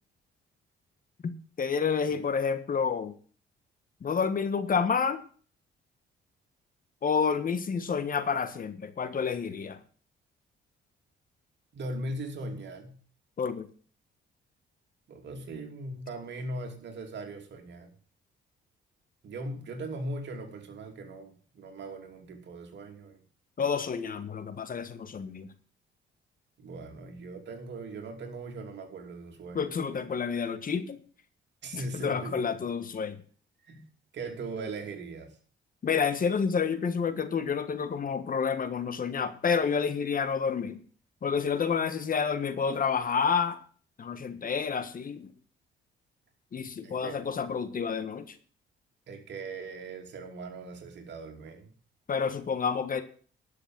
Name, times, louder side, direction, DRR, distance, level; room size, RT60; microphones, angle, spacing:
voice 1, 1.6-3.1 4.0-5.2 7.0-9.8 13.4-13.7 23.6-25.5 29.5-31.0 31.7-33.2 35.8-40.8 41.2-43.6 44.0-45.3 46.5-48.3 52.1-53.0, left 6 dB, 45° left, 11 dB, 1.4 m, -29 dB
voice 2, 11.7-12.9 15.1-17.9 19.2-23.2 26.6-29.7 31.6-32.6 33.6-33.8 34.1-35.3 46.8-47.2 49.1-51.7, right 2 dB, 65° right, 4 dB, 2.9 m, -39 dB
11.5 x 6.6 x 7.6 m, 0.43 s
cardioid pair, 90°, 20 cm